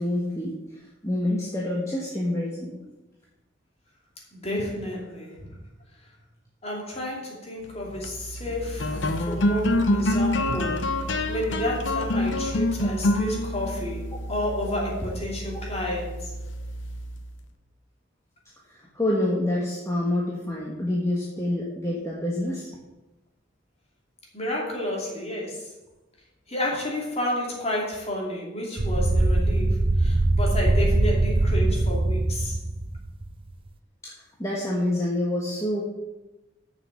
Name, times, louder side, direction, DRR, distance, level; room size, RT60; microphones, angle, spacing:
voice 1, 0.0-2.8 8.9-9.0 15.5-15.6 18.7-22.7 34.0-35.8, left 1 dB, 15° left, -4 dB, 1.3 m, -27 dB
voice 2, 4.3-5.5 6.6-10.8 11.3-16.3 24.3-25.7 26.5-32.6, left 1 dB, 35° left, -3 dB, 2.8 m, -31 dB
sound 1, 7.8-17.4, left 1 dB, 70° left, 0.8 m, -27 dB
sound 2, 28.8-33.4, right 2 dB, 25° right, 0.5 m, -22 dB
6.9 x 6.7 x 7.4 m, 1.0 s
head